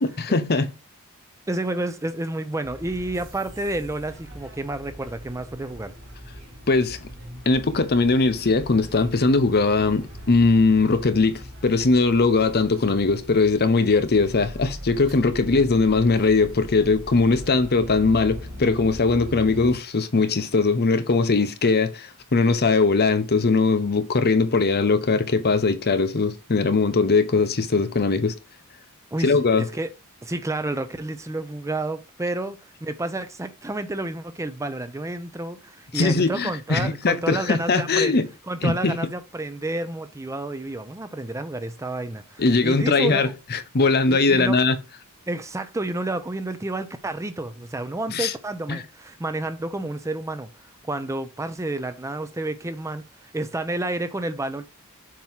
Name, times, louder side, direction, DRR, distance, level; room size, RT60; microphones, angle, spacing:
voice 1, 0.2-0.7 6.7-7.1 7.5-28.4 29.2-29.6 35.9-38.3 38.6-39.0 42.4-44.8 48.1-48.3 48.7-48.8, left 3 dB, 45° left, 0.8 m, -20 dB
voice 2, 1.5-5.9 29.1-29.9 30.2-38.2 38.5-43.3 44.1-44.6 45.3-50.5 50.8-54.7, right 2 dB, 15° right, 0.5 m, -30 dB
sound 1, 2.6-19.8, equal, 65° right, 3.7 m, -40 dB
7.5 x 3.0 x 5.6 m
head